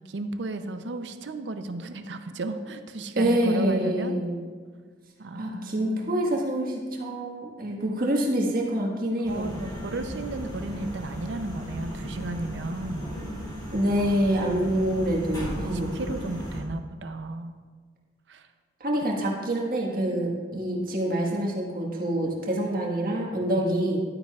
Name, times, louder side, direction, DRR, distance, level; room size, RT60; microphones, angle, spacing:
voice 1, 0.1-4.2 5.2-6.1 9.3-13.1 15.6-17.5 18.3-18.5 20.5-20.9 23.5-23.8, right 2 dB, 70° right, 8 dB, 0.6 m, -34 dB
voice 2, 3.2-4.4 5.4-9.5 13.7-15.9 18.8-24.0, right 1 dB, 50° right, -1 dB, 1.5 m, -26 dB
sound 1, 9.2-16.6, equal, 20° left, 2.5 m, -36 dB
12.0 x 9.0 x 2.4 m, 1.6 s
head